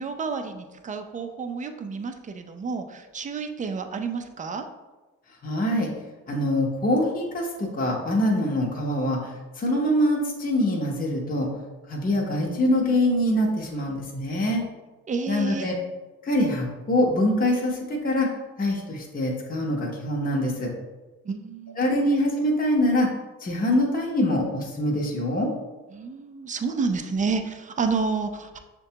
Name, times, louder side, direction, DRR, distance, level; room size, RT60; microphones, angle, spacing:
voice 1, 0.0-4.6 15.1-15.7 21.2-21.9 25.9-28.6, right 4 dB, 25° right, 7 dB, 0.4 m, -30 dB
voice 2, 5.4-5.9 6.3-11.5 11.9-14.6 15.3-15.7 16.2-18.3 18.6-20.7 21.8-23.1 23.4-25.5, left 1 dB, 30° left, -2 dB, 0.8 m, -24 dB
6.3 x 2.2 x 2.8 m, 1.2 s
cardioid pair, 90°, 30 cm